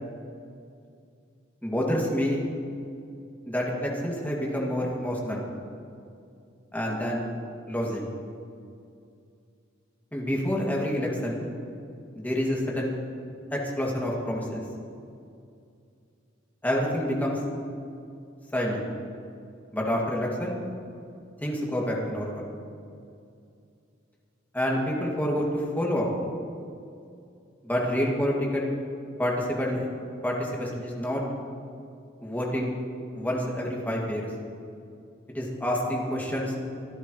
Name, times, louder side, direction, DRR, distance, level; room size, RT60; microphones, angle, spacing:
voice 1, 1.6-2.4 3.5-5.4 6.7-7.3 7.7-8.0 10.1-11.5 12.1-12.9 13.5-14.6 16.6-17.4 18.5-18.8 19.7-20.6 21.4-22.5 24.5-26.1 27.6-28.7 29.2-29.9 30.2-31.2 32.2-32.7 33.1-34.2 35.3-36.5, equal, 10° left, -3 dB, 2.5 m, -28 dB
25.5 x 12.5 x 3.3 m, 2.4 s
head